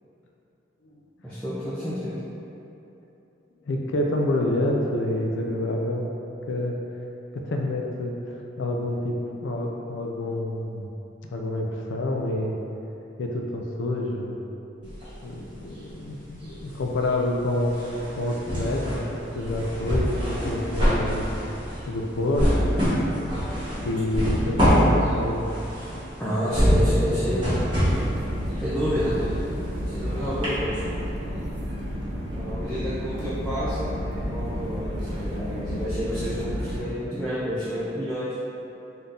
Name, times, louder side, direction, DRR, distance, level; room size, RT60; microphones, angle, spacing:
voice 1, 1.2-2.1 26.2-27.5 28.6-29.2 29.8-31.0 32.3-33.9 34.2-38.3, equal, 5° left, -12 dB, 0.6 m, -29 dB
voice 2, 3.7-6.1 6.5-6.8 7.3-8.2 8.6-10.9 11.3-12.5 13.2-14.4 14.8-14.9 15.2-17.8 18.1-19.0 19.3-21.3 21.9-22.8 23.8-25.5, left 1 dB, 90° left, 1 dB, 0.4 m, -27 dB
sound 1, 14.8-16.0 16.3-30.0 30.4-30.5, equal, 25° right, 1.3 m, -25 dB
sound 2, 27.2-36.8, equal, 65° right, 0.6 m, -31 dB
3.7 x 2.7 x 3.5 m, 3.0 s
head